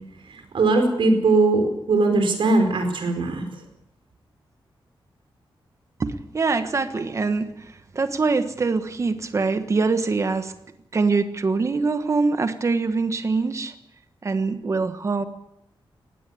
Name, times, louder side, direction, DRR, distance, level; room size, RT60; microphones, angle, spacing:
voice 1, 0.5-3.5, right 3 dB, 70° right, 5 dB, 4.8 m, -20 dB
voice 2, 6.0-7.5 7.9-10.5 10.9-13.7 14.2-15.2, right 4 dB, 35° right, 9 dB, 1.4 m, -23 dB
19.5 x 16.0 x 8.4 m, 0.83 s
wide cardioid pair, 175°, 9 cm